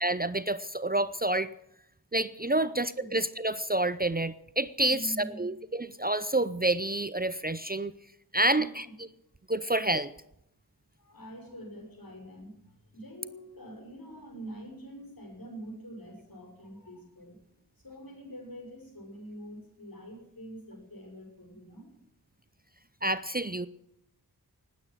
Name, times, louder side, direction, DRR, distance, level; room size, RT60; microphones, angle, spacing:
voice 1, 0.0-1.5 2.1-7.9 8.3-8.9 9.5-10.1 23.0-23.7, right 1 dB, 25° right, 14 dB, 0.6 m, -28 dB
voice 2, 2.6-3.1 4.9-5.5 8.5-8.7 11.0-17.4 17.8-21.9, right 1 dB, 65° left, 2 dB, 6.7 m, -45 dB
19.5 x 9.0 x 7.6 m, 0.80 s
wide cardioid pair, 55°, 38 cm